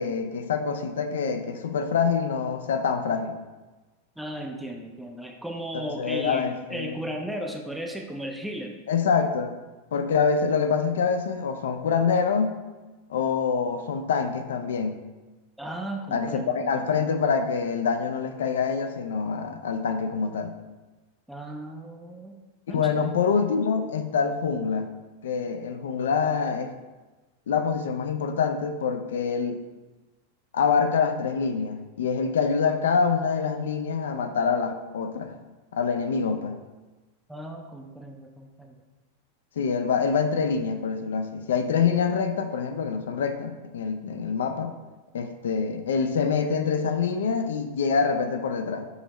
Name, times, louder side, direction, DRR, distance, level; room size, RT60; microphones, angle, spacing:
voice 1, 0.0-3.4 5.7-7.0 8.9-9.6 9.9-12.6 13.1-15.0 16.1-20.6 22.7-25.0 25.2-26.7 27.5-29.6 30.5-35.3 35.7-36.6 39.6-44.8 45.1-48.9, left 5 dB, 60° left, 7 dB, 0.4 m, -25 dB
voice 2, 4.2-8.8 15.6-16.9 21.3-22.4 22.7-23.1 37.3-38.7, right 1 dB, 5° right, 1 dB, 0.4 m, -36 dB
6.4 x 2.7 x 3.0 m, 1.2 s
figure-of-eight pair, 90°, 0 cm